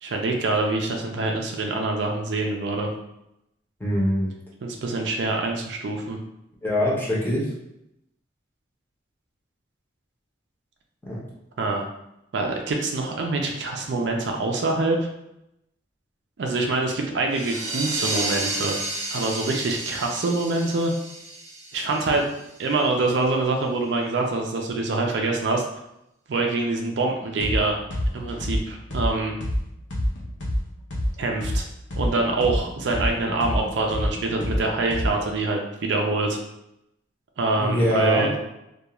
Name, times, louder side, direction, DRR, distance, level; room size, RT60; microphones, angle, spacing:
voice 1, 0.0-2.9 4.6-6.2 11.6-11.9 12.3-15.0 16.4-18.7 19.1-20.9 21.7-22.2 22.6-25.6 26.3-27.8 28.1-29.3 31.2-31.7 32.0-36.4 37.4-38.4, right 3 dB, 70° right, 1 dB, 0.4 m, -25 dB
voice 2, 3.8-4.3 6.6-7.4 11.0-11.2 37.6-38.3, equal, 10° left, -5 dB, 0.6 m, -23 dB
sound 1, 17.3-22.6, right 2 dB, 40° right, 0.8 m, -31 dB
sound 2, 27.4-27.6 27.9-31.6 31.9-35.3, equal, 80° left, 0.7 m, -26 dB
2.3 x 2.3 x 2.9 m, 0.85 s
head